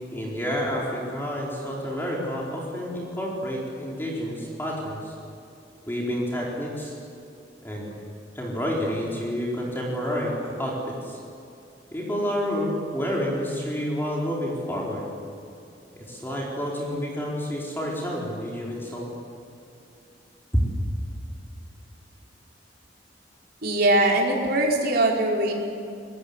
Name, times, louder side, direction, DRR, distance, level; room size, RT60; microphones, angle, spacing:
voice 1, 0.1-5.1 5.9-6.9 7.6-7.9 8.3-11.2 11.9-15.0 16.1-19.1, equal, 10° left, -3 dB, 4.3 m, -29 dB
voice 2, 23.6-25.5, right 1 dB, 60° right, -1 dB, 4.7 m, -21 dB
26.0 x 21.5 x 8.3 m, 2.6 s
head